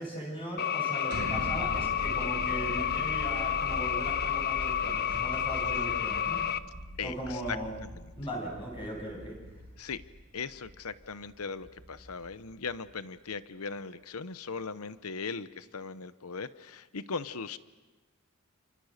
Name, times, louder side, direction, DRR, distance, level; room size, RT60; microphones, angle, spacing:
voice 1, 0.0-6.4 7.0-7.7 8.2-9.4, right 1 dB, 25° left, -2 dB, 7.9 m, -38 dB
sound 1, 0.6-6.6, left 9 dB, 45° left, 1.0 m, -30 dB
sound 2, 1.1-12.9, equal, 80° right, 3.6 m, -42 dB
voice 2, 7.0-7.6 7.9-8.1 9.8-10.0 10.3-17.6, left 5 dB, 90° left, 13 dB, 0.9 m, -38 dB
29.5 x 28.5 x 6.6 m, 1.2 s
head